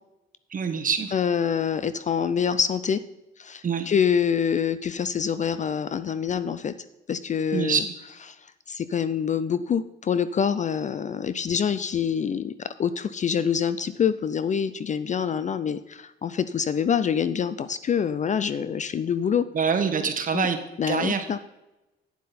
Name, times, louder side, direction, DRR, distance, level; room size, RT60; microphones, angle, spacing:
voice 1, 0.5-1.1 3.6-3.9 7.5-7.8 19.5-20.6 20.9-21.4, right 6 dB, 40° right, 7 dB, 1.2 m, -25 dB
voice 2, 1.1-3.0 3.4-6.7 7.1-7.8 8.7-19.5 20.3-20.5 20.8-21.4, left 7 dB, 40° left, 13 dB, 0.4 m, -26 dB
9.5 x 7.6 x 4.2 m, 0.98 s
cardioid pair, 90°, 20 cm